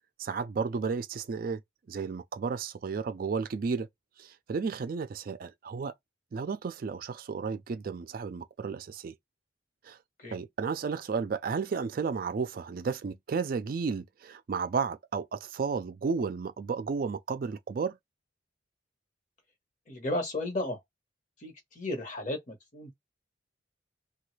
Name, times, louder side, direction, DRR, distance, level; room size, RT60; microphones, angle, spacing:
voice 1, 0.2-1.6 1.9-3.9 4.2-5.9 6.3-9.1 9.8-10.0 10.3-18.0, right 5 dB, 50° right, 0.3 m, -33 dB
voice 2, 19.9-20.8 21.4-22.9, left 1 dB, 45° left, 1.0 m, -34 dB
3.1 x 2.3 x 3.1 m
head